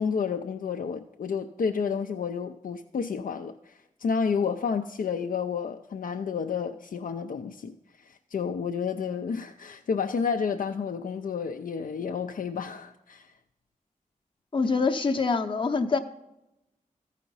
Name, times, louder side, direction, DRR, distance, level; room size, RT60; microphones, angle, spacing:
voice 1, 0.0-13.3, left 6 dB, 85° left, 5 dB, 0.5 m, -30 dB
voice 2, 14.5-16.0, left 4 dB, 35° left, 5 dB, 0.7 m, -25 dB
14.5 x 5.0 x 5.4 m, 0.91 s
wide cardioid pair, 95°, 14 cm